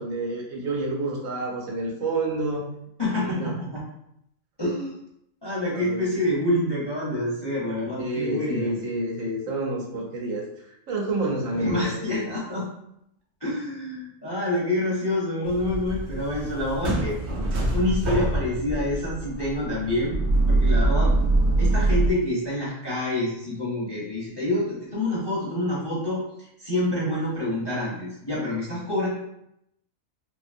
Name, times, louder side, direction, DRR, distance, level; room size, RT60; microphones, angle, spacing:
voice 1, 0.0-2.7 3.2-3.6 5.7-6.1 8.0-12.3, right 2 dB, 80° right, -2 dB, 1.2 m, -29 dB
voice 2, 3.0-3.8 4.6-4.9 5.4-8.7 11.6-12.7 13.4-17.2 17.7-20.2 20.5-21.1 21.6-26.2 26.6-29.1, left 1 dB, 30° left, -6 dB, 0.5 m, -27 dB
sound 1, 15.4-22.1, right 2 dB, 65° right, 0.8 m, -24 dB
2.8 x 2.5 x 2.5 m, 0.78 s
omnidirectional pair, 1.4 m